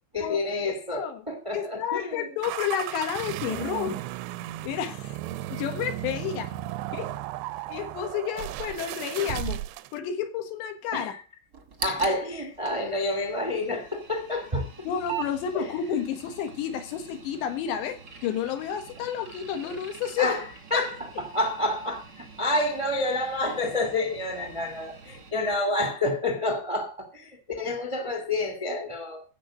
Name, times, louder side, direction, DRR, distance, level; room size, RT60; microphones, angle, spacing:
voice 1, 0.1-2.3 10.9-11.1 11.8-14.7 15.5-15.7 20.2-20.4 20.7-29.2, left 2 dB, 25° right, 2 dB, 0.6 m, -29 dB
voice 2, 0.9-1.2 1.5-4.0 4.6-5.2 5.5-6.5 6.9-7.1 7.7-9.6 9.9-11.1 14.9-20.3 20.7-20.8 24.6-24.7, left 8 dB, 80° left, 7 dB, 3.8 m, -30 dB
sound 1, 2.4-10.0, right 14 dB, 85° right, 2.9 m, -35 dB
sound 2, 11.5-25.3, right 6 dB, 55° right, 1.1 m, -43 dB
15.0 x 5.2 x 7.4 m, 0.35 s
omnidirectional pair, 5.0 m